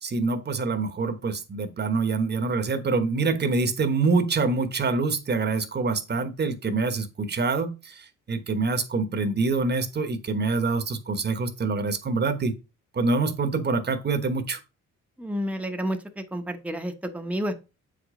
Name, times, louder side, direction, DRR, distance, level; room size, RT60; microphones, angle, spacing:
voice 1, 0.0-7.9 8.3-12.5 12.9-14.6, right 4 dB, 35° right, 1.2 m, -25 dB
voice 2, 15.2-17.5, equal, 5° right, 1.0 m, -30 dB
7.5 x 5.1 x 3.8 m
cardioid pair, 90°, 30 cm